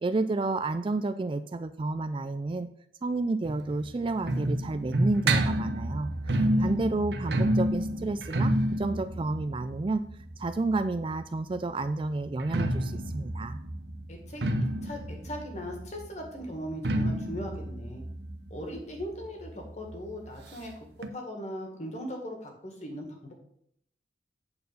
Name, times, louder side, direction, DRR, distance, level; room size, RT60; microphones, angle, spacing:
voice 1, 0.0-2.7 3.0-6.1 6.6-10.0 10.4-13.6, right 3 dB, 25° right, 11 dB, 0.3 m, -30 dB
sound 1, 3.4-11.1 12.3-19.6 19.9-20.0 20.3-20.4 21.0-21.1, right 1 dB, 60° right, 0.8 m, -29 dB
voice 2, 6.4-6.7 14.1-14.4 14.8-18.0 18.5-23.3, equal, 40° left, 2 dB, 1.9 m, -39 dB
8.7 x 4.5 x 6.7 m, 0.69 s
head